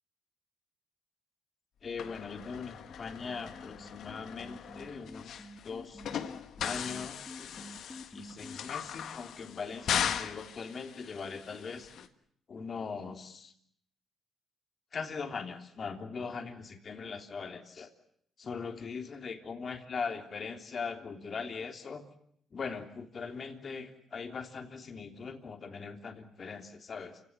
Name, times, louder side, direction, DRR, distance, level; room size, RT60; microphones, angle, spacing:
voice 1, 1.8-6.0 6.6-7.7 8.1-12.1 12.5-13.5 14.9-17.9 18.4-22.0 22.5-27.2, left 5 dB, 45° left, 5 dB, 3.3 m, -40 dB
sound 1, 2.0-12.1, left 9 dB, 70° left, 1.6 m, -39 dB
sound 2, 2.9-8.6, left 1 dB, 15° left, 2.3 m, -49 dB
28.5 x 17.5 x 9.6 m, 0.68 s
cardioid pair, 90°, 0 cm